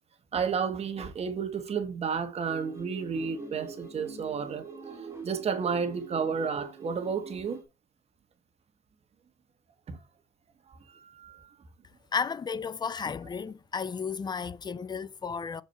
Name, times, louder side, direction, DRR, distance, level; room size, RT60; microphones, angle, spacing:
voice 1, 0.3-5.0 5.2-7.6 9.9-10.0 11.0-11.4, right 6 dB, 40° right, 1.4 m, -31 dB
sound 1, 2.5-7.6, right 4 dB, 15° right, 2.1 m, -44 dB
voice 2, 12.1-15.6, left 6 dB, 25° left, 0.5 m, -33 dB
6.8 x 4.5 x 4.4 m
cardioid pair, 110°, 17 cm